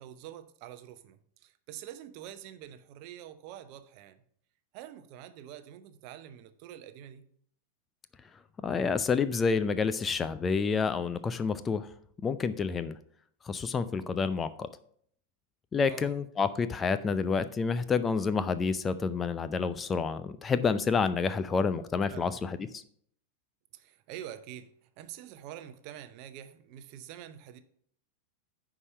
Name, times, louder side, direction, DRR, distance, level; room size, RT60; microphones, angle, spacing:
voice 1, 0.0-4.2 4.7-7.2 15.9-16.1 22.1-22.3 23.7-27.6, right 11 dB, 45° right, 0.7 m, -46 dB
voice 2, 8.6-11.9 12.2-13.0 13.4-14.7 15.7-22.8, left 5 dB, 20° left, 0.5 m, -29 dB
9.7 x 4.9 x 5.5 m
figure-of-eight pair, 90°, 0 cm